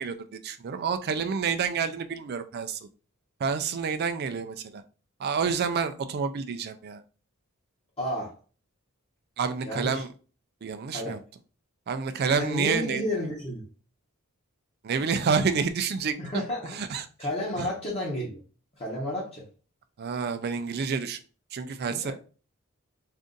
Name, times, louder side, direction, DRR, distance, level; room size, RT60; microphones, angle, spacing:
voice 1, 0.0-2.8 3.4-4.8 5.2-7.0 9.4-10.1 10.6-11.2 11.9-13.0 14.8-16.4 16.7-17.1 17.6-17.7 20.0-21.2 21.5-22.1, right 5 dB, 50° right, 10 dB, 0.4 m, -28 dB
voice 2, 8.0-8.3 9.6-10.0 10.9-11.2 12.4-13.6 16.2-16.7 17.2-18.4 18.8-19.4 22.0-22.1, left 1 dB, 30° left, -5 dB, 0.9 m, -31 dB
2.6 x 2.4 x 3.7 m, 0.36 s
head